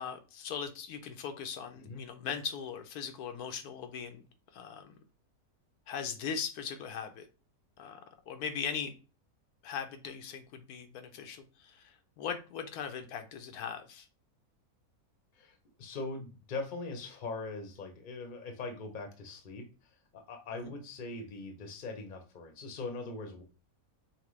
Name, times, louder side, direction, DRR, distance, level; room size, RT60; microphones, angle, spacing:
voice 1, 0.0-4.2 4.5-4.9 5.9-7.2 7.8-8.0 8.3-8.9 9.6-14.1 20.6-20.7, left 7 dB, 85° left, 7 dB, 1.2 m, -39 dB
voice 2, 15.3-19.7 20.1-23.4, left 3 dB, 40° left, 5 dB, 0.8 m, -41 dB
5.8 x 2.2 x 3.1 m, 0.32 s
omnidirectional pair, 1.6 m